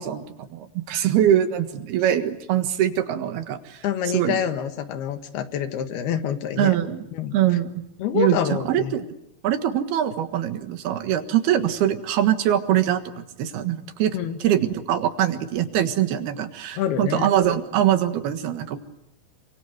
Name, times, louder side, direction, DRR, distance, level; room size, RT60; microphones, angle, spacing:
voice 1, 0.0-3.9 4.1-4.4 6.6-7.1 7.3-7.8 8.1-9.2 9.4-18.8, right 11 dB, 75° right, 8 dB, 3.5 m, -23 dB
voice 2, 3.8-6.8 7.1-7.3 8.0-9.0 14.1-14.4 16.8-17.3, left 8 dB, 75° left, 8 dB, 3.5 m, -26 dB
28.0 x 25.0 x 8.0 m, 0.79 s
omnidirectional pair, 4.6 m